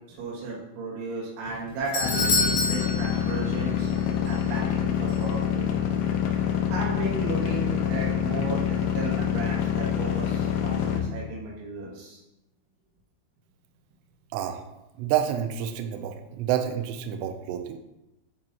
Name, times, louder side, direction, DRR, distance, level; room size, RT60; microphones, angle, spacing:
voice 1, 0.1-3.9 4.3-5.8 6.3-6.4 6.7-12.2, right 3 dB, 70° right, -4 dB, 4.1 m, -34 dB
Doorbell, 1.5-4.0 4.3-4.4 5.1-5.2, left 3 dB, 65° left, 4.1 m, -28 dB
sound 1, 2.0-11.0, left 9 dB, 85° left, 3.3 m, -26 dB
voice 2, 14.3-17.8, right 10 dB, 90° right, 6 dB, 2.5 m, -29 dB
11.0 x 5.4 x 2.9 m, 0.94 s
omnidirectional pair, 5.8 m